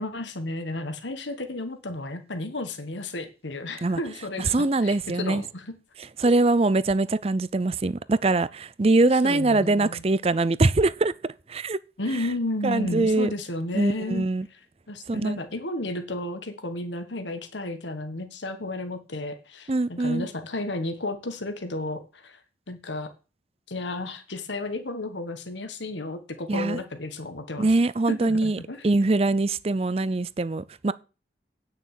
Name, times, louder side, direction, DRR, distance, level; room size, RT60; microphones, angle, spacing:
voice 1, 0.0-5.6 9.0-10.0 12.0-14.3 14.9-22.4 22.7-23.1 23.7-27.7 28.1-28.8, left 2 dB, 85° left, 1.5 m, -33 dB
voice 2, 4.5-5.4 6.2-11.1 11.5-11.8 12.6-13.3 13.7-14.5 15.1-15.4 19.7-20.3 26.5-26.8 27.6-28.6 28.8-30.9, right 2 dB, 35° right, 0.5 m, -23 dB
9.3 x 6.5 x 7.5 m
head